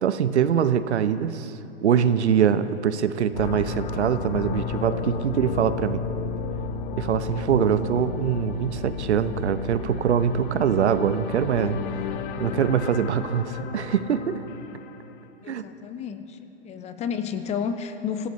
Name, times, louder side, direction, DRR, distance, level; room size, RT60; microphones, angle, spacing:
voice 1, 0.0-1.5 1.8-6.0 6.9-11.8 12.4-14.4 15.5-15.6, right 8 dB, 70° right, 12 dB, 0.9 m, -23 dB
sound 1, 3.3-15.3, left 6 dB, 45° left, 0.9 m, -33 dB
voice 2, 15.4-18.3, left 7 dB, 20° left, 10 dB, 0.7 m, -31 dB
25.5 x 15.5 x 3.2 m, 2.9 s
hypercardioid pair, 115°, 35 cm